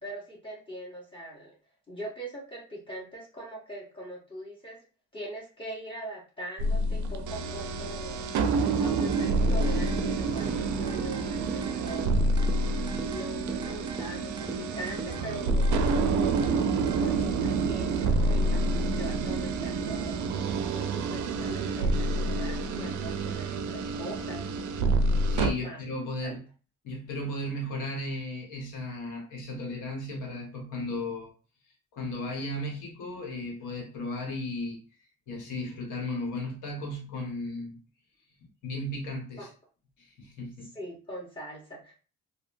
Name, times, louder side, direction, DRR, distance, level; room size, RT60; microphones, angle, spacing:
voice 1, 0.0-1.5 1.9-4.8 5.1-8.3 8.8-12.3 13.0-16.4 17.0-24.5 25.6-25.8 26.2-26.4 39.4-39.5 40.7-41.9, right 1 dB, 15° left, 0.9 m, -42 dB
sound 1, 6.6-25.5, right 2 dB, 75° right, 0.4 m, -28 dB
sound 2, 9.0-17.0, right 4 dB, 15° right, 0.4 m, -41 dB
voice 2, 25.3-26.4 26.8-31.3 31.9-34.8 35.3-37.8 38.6-39.5 40.0-40.7, left 1 dB, 80° left, 1.2 m, -35 dB
2.8 x 2.1 x 2.5 m
cardioid pair, 90°, 30 cm